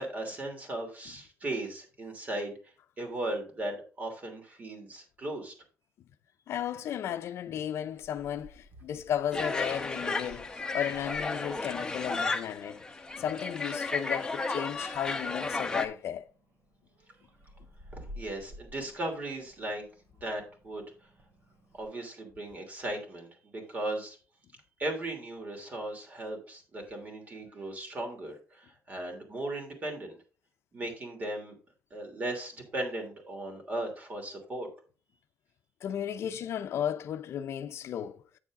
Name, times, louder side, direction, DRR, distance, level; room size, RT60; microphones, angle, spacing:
voice 1, 0.0-5.5 17.9-19.9 20.2-20.8 21.8-24.2 24.8-30.2 30.7-31.6 31.9-34.7, right 1 dB, 35° right, 3.0 m, -37 dB
voice 2, 6.5-12.8 13.2-16.3 35.8-38.2, left 9 dB, 65° left, 0.6 m, -34 dB
Meow, 7.9-21.9, left 1 dB, 50° right, 2.8 m, -54 dB
sound 1, 9.3-15.9, left 3 dB, 15° left, 1.0 m, -33 dB
8.7 x 7.2 x 3.7 m
cardioid pair, 125°, 5 cm